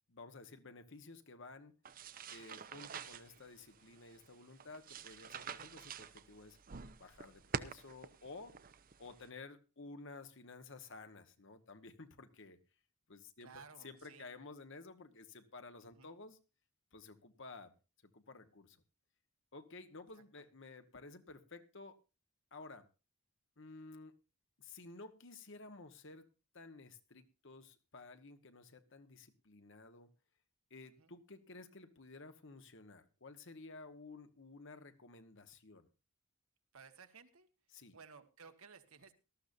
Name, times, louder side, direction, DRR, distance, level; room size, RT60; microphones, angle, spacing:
voice 1, 0.1-1.7 2.3-6.6 7.0-8.6 9.0-12.6 13.1-16.4 16.9-17.7 18.1-18.8 19.5-22.0 22.5-22.9 23.6-24.1 24.6-26.3 26.5-30.1 30.7-35.9 37.7-38.0, left 3 dB, 60° left, 9 dB, 1.3 m, -53 dB
sound 1, 1.8-9.3, right 6 dB, 40° right, 0.6 m, -48 dB
voice 2, 13.4-14.3 15.8-16.1 20.4-20.5 30.8-31.1 36.7-37.5 37.9-39.1, right 5 dB, 75° right, 7 dB, 1.5 m, -57 dB
18.5 x 13.5 x 2.6 m, 0.30 s
head